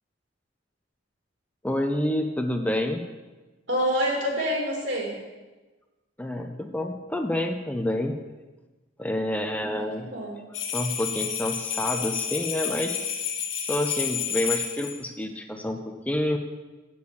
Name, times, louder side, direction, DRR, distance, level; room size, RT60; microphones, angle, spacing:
voice 1, 1.6-3.0 6.2-8.2 9.0-10.1 10.7-13.0 13.7-16.4, left 1 dB, 10° left, 5 dB, 0.5 m, -28 dB
voice 2, 3.7-5.1 9.5-10.4, equal, 70° right, -2 dB, 2.9 m, -27 dB
sound 1, 10.5-15.0, left 7 dB, 90° left, 1.4 m, -30 dB
7.9 x 6.9 x 7.0 m, 1.2 s
head